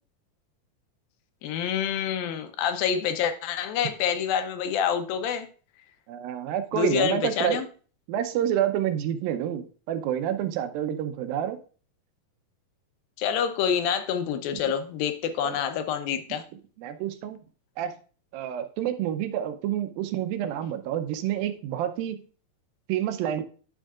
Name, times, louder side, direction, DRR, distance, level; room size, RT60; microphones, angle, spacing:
voice 1, 1.4-5.5 6.7-7.7 13.2-16.4, left 8 dB, 80° left, 8 dB, 2.5 m, -27 dB
voice 2, 6.1-7.6 8.1-11.6 15.4-15.5 16.3-16.4 16.8-17.4 17.8-17.9 18.3-22.2 22.9-23.4, right 10 dB, 80° right, 9 dB, 2.5 m, -28 dB
10.0 x 6.3 x 2.4 m, 0.39 s
omnidirectional pair, 4.2 m